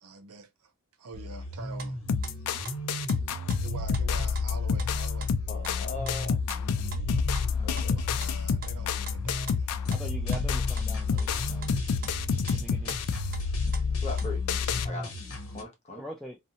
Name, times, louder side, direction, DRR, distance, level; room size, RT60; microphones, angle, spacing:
voice 1, 0.0-0.5 1.0-2.0 3.6-5.3 7.7-9.7, right 3 dB, 80° right, 0.6 m, -45 dB
sound 1, 1.1-15.6, equal, 65° left, 0.8 m, -39 dB
sound 2, 1.8-2.4 2.6-3.2 3.5-3.6 3.9-4.1 4.3-4.5 4.8-4.9 5.2-5.3 5.6-5.8 6.1-6.6 6.9-8.3 8.6-9.2 9.5-9.6 9.9-10.5 10.8-10.9 11.2-12.2 12.5-12.6 12.9-13.0 13.3-13.9 14.2-14.3, right 5 dB, 40° right, 0.6 m, -44 dB
sound 3, 2.1-14.9, left 5 dB, 85° left, 0.3 m, -29 dB
voice 2, 5.5-6.4 7.6-8.0 14.0-14.4 14.8-15.1 15.5-16.0, left 2 dB, 30° left, 0.8 m, -39 dB
voice 3, 9.9-11.7 12.5-13.0 16.0-16.4, left 1 dB, ahead, 0.3 m, -42 dB
2.7 x 2.0 x 2.7 m
head